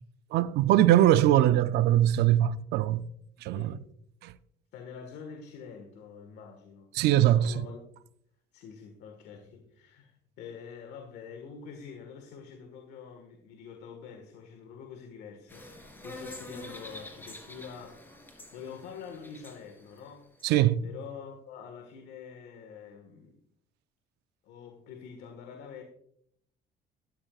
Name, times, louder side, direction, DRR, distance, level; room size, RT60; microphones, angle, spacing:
voice 1, 0.3-3.0 3.4-3.8 4.2-4.3 7.0-7.5 20.4-20.8, right 12 dB, 75° right, 0.5 m, -22 dB
voice 2, 3.5-3.8 4.7-6.9 7.3-7.8 8.5-18.0 18.5-20.5 20.8-23.4 24.4-25.8, left 6 dB, 85° left, 1.6 m, -46 dB
sound 1, 15.5-20.5, left 1 dB, 10° left, 3.2 m, -47 dB
13.0 x 12.0 x 2.4 m
cardioid pair, 110°, 17 cm